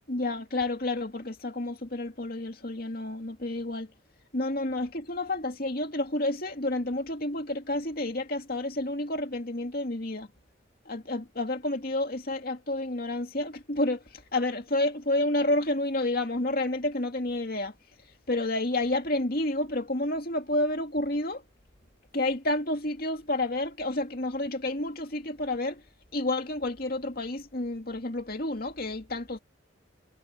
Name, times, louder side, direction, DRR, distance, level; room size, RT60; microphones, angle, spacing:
voice 1, 0.1-3.9 4.3-10.3 10.9-17.7 18.3-21.4 22.1-25.8 26.1-29.4, left 1 dB, 45° left, 2.5 m, -30 dB
head